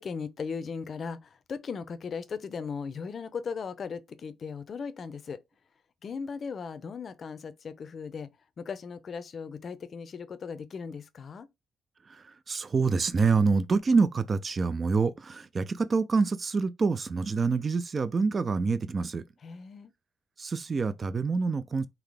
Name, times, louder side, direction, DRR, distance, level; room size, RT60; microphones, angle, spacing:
voice 1, 0.0-5.4 6.0-8.3 8.6-11.5 19.4-19.9, left 5 dB, 50° left, 0.6 m, -37 dB
voice 2, 12.1-19.2 20.4-21.9, right 4 dB, 35° right, 0.5 m, -26 dB
3.9 x 2.8 x 3.3 m
cardioid pair, 90°, 0 cm